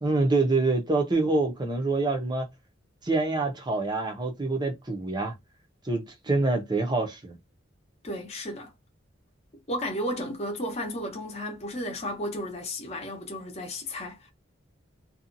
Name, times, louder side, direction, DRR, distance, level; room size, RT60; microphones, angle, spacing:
voice 1, 0.0-2.5 3.0-5.3 5.8-7.4, right 3 dB, 20° right, 0.7 m, -26 dB
voice 2, 8.0-8.7 9.7-14.3, equal, 35° left, 0.8 m, -33 dB
2.7 x 2.4 x 2.5 m
head